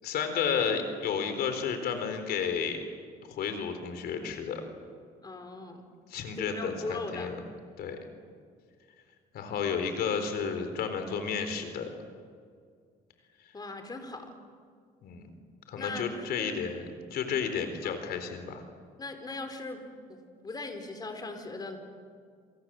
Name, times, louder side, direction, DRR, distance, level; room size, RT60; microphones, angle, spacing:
voice 1, 0.0-2.8 3.3-4.6 6.1-7.4 7.8-8.0 9.3-11.9 15.0-15.3 15.7-18.6, left 6 dB, 65° left, 7 dB, 4.0 m, -32 dB
voice 2, 5.2-5.8 6.4-7.3 13.5-14.3 15.8-16.6 17.8-18.0 19.0-19.8 20.1-20.2 20.4-21.8, left 3 dB, 25° left, 6 dB, 4.4 m, -39 dB
27.0 x 27.0 x 7.7 m, 2.1 s
cardioid pair, 110°, 17 cm